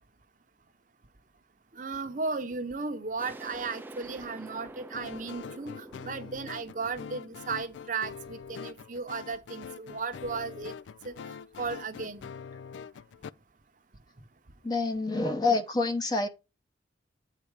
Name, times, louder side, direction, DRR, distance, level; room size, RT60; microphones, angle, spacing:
voice 1, 1.8-10.7 11.0-11.1 11.6-12.2, right 4 dB, 45° right, 0.8 m, -35 dB
sound 1, 3.2-8.7, right 2 dB, 10° right, 0.4 m, -47 dB
sound 2, 4.9-13.3, left 6 dB, 85° left, 0.3 m, -44 dB
voice 2, 14.6-16.3, left 3 dB, 20° left, 0.7 m, -27 dB
8.3 x 4.2 x 4.7 m
head